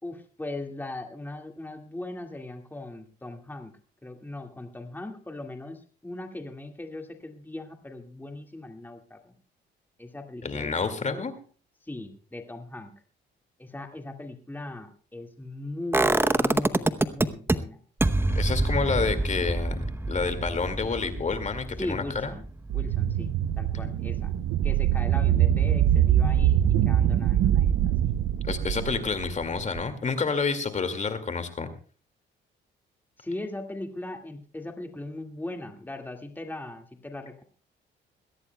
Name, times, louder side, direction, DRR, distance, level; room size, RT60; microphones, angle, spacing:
voice 1, 0.0-3.7 4.0-9.3 10.0-11.3 11.8-12.9 13.6-17.8 21.3-21.4 21.8-22.4 22.7-24.3 24.6-28.2 33.2-37.4, left 2 dB, 10° left, 4 dB, 2.0 m, -39 dB
voice 2, 10.4-11.3 18.3-22.3 28.4-31.7, left 4 dB, 35° left, 9 dB, 2.2 m, -29 dB
sound 1, 15.9-17.6 18.0-23.8 24.2-24.3, right 2 dB, 10° right, 0.8 m, -26 dB
sound 2, 22.7-29.8, right 11 dB, 80° right, 0.7 m, -23 dB
22.0 x 16.0 x 2.3 m, 0.39 s
cardioid pair, 90°, 20 cm